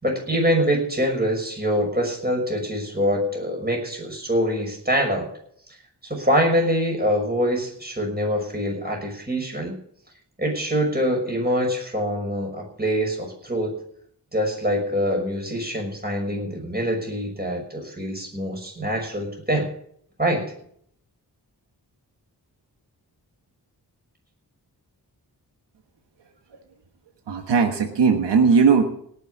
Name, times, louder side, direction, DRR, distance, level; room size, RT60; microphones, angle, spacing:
voice 1, 0.0-5.3 6.0-9.7 10.4-13.7 14.3-19.7 20.2-20.5, equal, 25° right, 1 dB, 6.1 m, -24 dB
voice 2, 27.3-28.8, right 5 dB, 90° right, 5 dB, 1.4 m, -18 dB
18.0 x 6.6 x 8.3 m, 0.65 s
cardioid pair, 40°, 41 cm